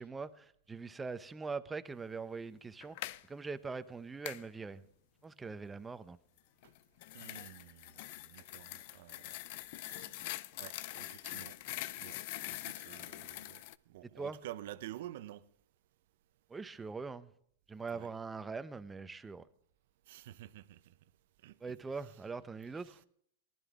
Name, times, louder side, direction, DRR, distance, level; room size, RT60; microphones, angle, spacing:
voice 1, 0.0-4.8 5.2-6.2 14.2-14.4 16.5-17.3 17.7-19.5 21.6-23.0, right 4 dB, 15° right, 0.8 m, -42 dB
sound 1, 2.8-3.2 4.2-4.4 6.6-13.7, left 16 dB, 55° left, 0.5 m, -44 dB
voice 2, 7.1-9.4 9.8-11.6 12.0-15.5 17.9-18.1 20.1-20.9 21.4-21.7 22.8-22.9, right 14 dB, 65° right, 0.7 m, -50 dB
19.5 x 12.0 x 3.6 m
hypercardioid pair, 110°, 0 cm